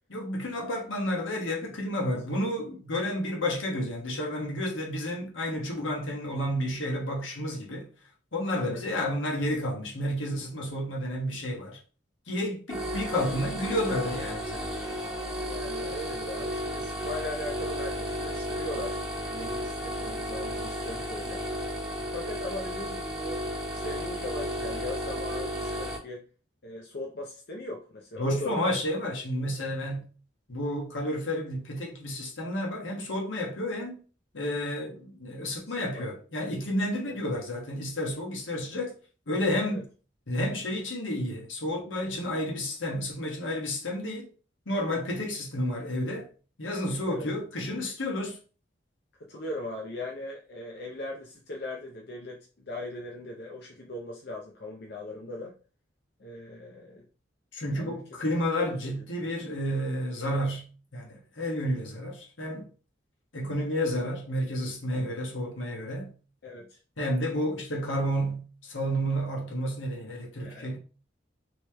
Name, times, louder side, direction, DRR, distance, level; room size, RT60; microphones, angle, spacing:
voice 1, 0.1-7.9 8.3-11.8 12.3-14.7 28.2-30.1 30.5-34.0 34.3-38.9 39.3-39.9 40.3-44.3 44.7-46.3 46.6-48.4 57.5-60.6 60.9-62.7 63.3-66.1 67.0-70.8, equal, 80° left, 1.2 m, -31 dB
sound 1, 12.7-26.0, equal, 5° right, 0.8 m, -33 dB
voice 2, 15.4-21.4 22.0-23.4 23.7-26.3 26.6-28.8 35.7-36.1 37.1-37.2 39.6-39.8 47.1-47.3 49.3-55.5 56.2-57.1 57.7-58.0 58.6-59.0 66.4-66.8 70.4-70.7, left 2 dB, 55° left, 0.6 m, -39 dB
3.1 x 3.1 x 3.3 m
head